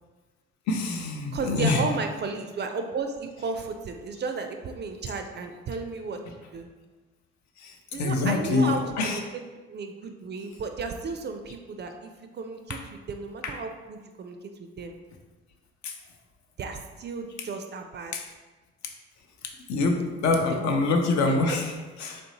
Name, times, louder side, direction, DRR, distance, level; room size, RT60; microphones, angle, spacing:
voice 1, 0.7-2.0 7.6-9.2 12.7-12.8 13.4-13.6 15.8-15.9 18.1-18.2 19.7-22.2, left 3 dB, 65° left, 3 dB, 0.6 m, -26 dB
voice 2, 1.3-6.2 6.5-6.7 7.9-9.4 9.7-15.0 16.6-18.1 20.3-20.8 21.3-21.6, right 4 dB, 35° right, 5 dB, 0.4 m, -34 dB
3.2 x 2.6 x 2.9 m, 1.3 s
supercardioid pair, 60°, 31 cm